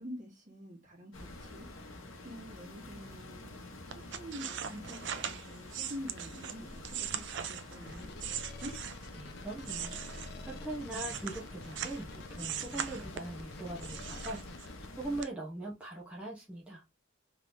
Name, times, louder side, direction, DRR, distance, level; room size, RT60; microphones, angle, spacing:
voice 1, 0.0-1.8 2.2-3.5 4.1-8.8, equal, 40° right, 1.6 m, -47 dB
sound 1, 1.1-15.2, left 2 dB, 85° left, 1.0 m, -49 dB
sound 2, 3.9-9.2 9.6-12.0 12.4-13.4 13.8-14.9 15.2-15.3, right 9 dB, 60° right, 0.4 m, -40 dB
sound 3, 7.8-15.2, left 2 dB, 50° left, 0.5 m, -47 dB
voice 2, 9.2-16.8, right 2 dB, 5° right, 0.8 m, -41 dB
3.5 x 3.1 x 2.6 m
head